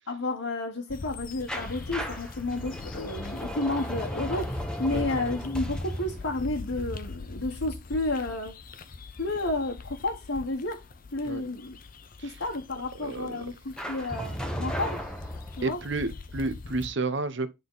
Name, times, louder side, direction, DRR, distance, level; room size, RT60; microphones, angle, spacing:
voice 1, 0.1-8.5 9.2-10.8 11.1-11.8 12.2-15.0 15.6-15.8, left 2 dB, 70° left, 1.4 m, -31 dB
sound 1, 0.9-16.9, left 3 dB, 45° left, 0.6 m, -42 dB
sound 2, 1.5-8.3 13.8-16.0, equal, 5° left, 1.0 m, -36 dB
voice 2, 13.0-13.5 15.6-17.5, right 3 dB, 60° right, 0.9 m, -31 dB
9.4 x 3.9 x 3.9 m
head